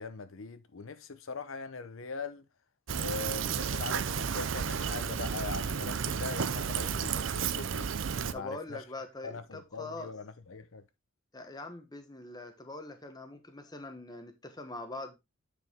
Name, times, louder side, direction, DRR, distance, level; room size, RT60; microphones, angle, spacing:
voice 1, 0.0-2.5 3.0-7.9 8.3-8.8 9.2-10.8, left 4 dB, 75° left, 0.8 m, -41 dB
Fill (with liquid), 2.9-8.3, right 6 dB, 65° right, 0.5 m, -32 dB
voice 2, 8.3-10.1 11.3-15.2, left 2 dB, 20° left, 1.1 m, -43 dB
9.0 x 4.9 x 3.5 m
head